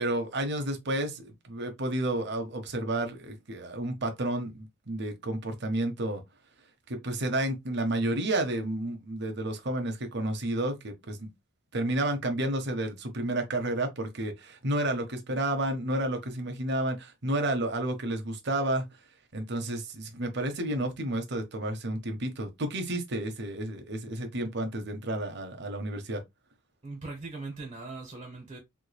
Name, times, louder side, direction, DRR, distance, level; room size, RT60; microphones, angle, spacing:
voice 1, 0.0-6.2 6.9-11.3 11.7-18.8 19.3-26.2, right 1 dB, 55° right, 0.9 m, -31 dB
voice 2, 26.8-28.6, right 3 dB, 25° right, 1.3 m, -40 dB
3.6 x 3.3 x 2.3 m
head